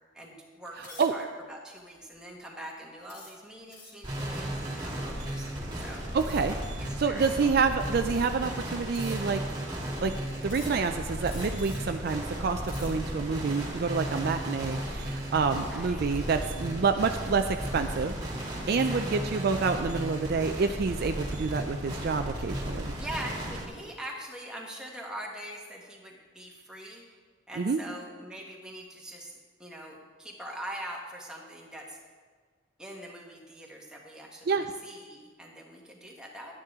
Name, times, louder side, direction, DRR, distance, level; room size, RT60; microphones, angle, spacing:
voice 1, 0.1-6.0 6.8-7.5 15.7-16.0 18.7-19.3 23.0-27.0 27.5-29.3 29.6-32.0 32.8-36.5, right 1 dB, 5° right, -2 dB, 1.4 m, -43 dB
sound 1, 0.8-1.2 1.9-2.1 3.1-4.1 6.2-6.6 7.4-7.5 8.0-8.5 8.9-9.5 10.5-10.9 11.2-12.0 12.5-13.1, left 3 dB, 60° left, 2.8 m, -48 dB
voice 2, 0.8-1.1 6.1-9.4 10.0-10.1 10.4-18.2 18.7-22.9 27.6-27.8 34.5-34.7, right 5 dB, 50° right, 7 dB, 0.4 m, -28 dB
sound 2, 4.0-23.6, equal, 20° right, 2.0 m, -35 dB
11.0 x 9.4 x 3.6 m, 1.5 s
head